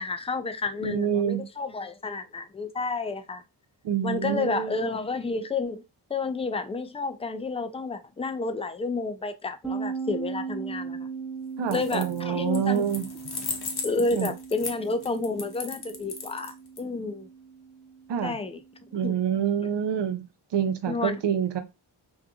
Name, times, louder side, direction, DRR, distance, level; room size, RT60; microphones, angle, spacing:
voice 1, 0.0-3.4 4.0-5.8 6.1-11.1 11.7-12.9 13.8-17.3 18.2-18.6 19.0-19.2 20.9-21.2, left 3 dB, 15° left, 0.3 m, -30 dB
voice 2, 0.8-1.5 3.8-4.8 11.6-13.1 14.1-14.3 18.1-18.4 18.9-20.3 20.5-21.6, right 8 dB, 60° right, 0.6 m, -27 dB
sound 1, 9.6-19.1, right 5 dB, ahead, 0.9 m, -38 dB
sound 2, 11.6-12.2 12.5-16.8, left 5 dB, 50° left, 0.8 m, -36 dB
2.7 x 2.3 x 2.4 m
cardioid pair, 45°, 50 cm